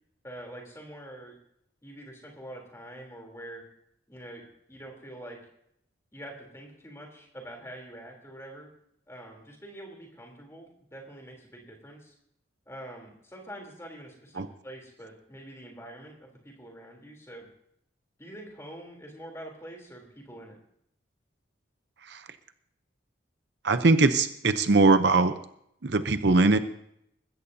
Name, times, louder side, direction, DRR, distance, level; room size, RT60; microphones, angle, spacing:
voice 1, 0.2-1.3 1.8-3.6 4.1-4.4 4.7-5.4 6.1-8.7 9.1-12.1 12.7-17.5 18.2-20.6, right 1 dB, 15° left, 0 dB, 3.4 m, -45 dB
voice 2, 23.6-25.3 25.8-26.6, right 3 dB, 65° right, 10 dB, 0.7 m, -21 dB
20.5 x 15.5 x 2.8 m, 0.73 s
head